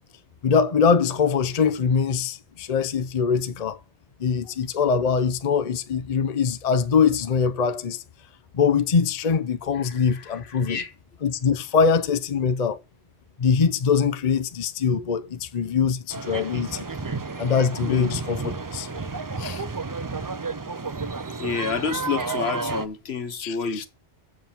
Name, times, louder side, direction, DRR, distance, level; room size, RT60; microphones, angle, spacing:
voice 1, 0.4-3.8 4.2-8.0 8.5-10.8 11.2-12.8 13.4-16.9 17.4-18.9 19.4-19.6 23.4-23.8, left 6 dB, 40° left, 0.7 m, -23 dB
voice 2, 9.8-10.9 17.9-18.1 21.4-23.9, left 6 dB, 65° left, 1.2 m, -29 dB
sound 1, 16.1-22.9, right 4 dB, 30° right, 0.4 m, -31 dB
7.6 x 7.5 x 5.8 m
omnidirectional pair, 1.2 m